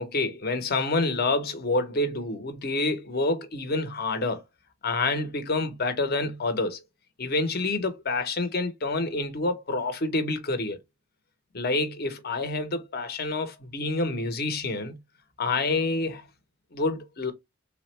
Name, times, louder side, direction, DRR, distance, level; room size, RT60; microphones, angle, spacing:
voice 1, 0.0-4.4 4.8-6.8 7.2-10.8 11.5-15.0 15.4-16.3 16.7-17.3, left 2 dB, 50° left, 0.7 m, -28 dB
3.5 x 2.1 x 2.9 m
head